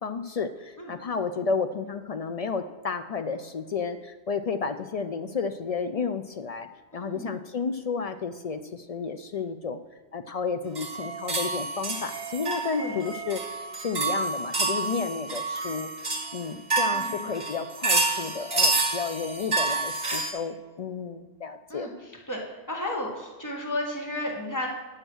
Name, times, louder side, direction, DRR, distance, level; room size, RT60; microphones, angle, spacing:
voice 1, 0.0-9.8 10.1-15.9 16.3-21.9, left 5 dB, 60° left, 9 dB, 0.4 m, -32 dB
voice 2, 6.9-7.4 12.8-13.0 16.9-17.3 21.7-21.9 22.3-22.4 22.7-24.7, left 1 dB, 15° left, -1 dB, 1.6 m, -33 dB
sound 1, 10.7-20.3, right 3 dB, 40° right, 1.4 m, -28 dB
9.6 x 6.5 x 6.1 m, 1.3 s
omnidirectional pair, 1.1 m